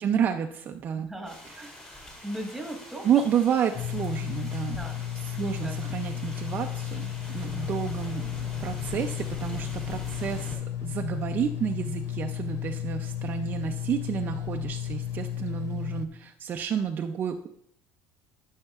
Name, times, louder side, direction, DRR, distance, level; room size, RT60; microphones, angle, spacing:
voice 1, 0.0-1.1 1.4-1.7 3.0-4.8 5.1-8.3 8.6-17.5, right 8 dB, 35° right, 4 dB, 0.5 m, -30 dB
voice 2, 1.0-3.1 4.7-5.0 5.3-5.8, right 1 dB, ahead, 1 dB, 1.4 m, -38 dB
sound 1, 1.3-10.6, left 1 dB, 25° left, 2.2 m, -44 dB
sound 2, 3.7-16.1, left 11 dB, 60° left, 0.5 m, -33 dB
12.5 x 6.4 x 2.4 m, 0.69 s
cardioid pair, 140°, 5 cm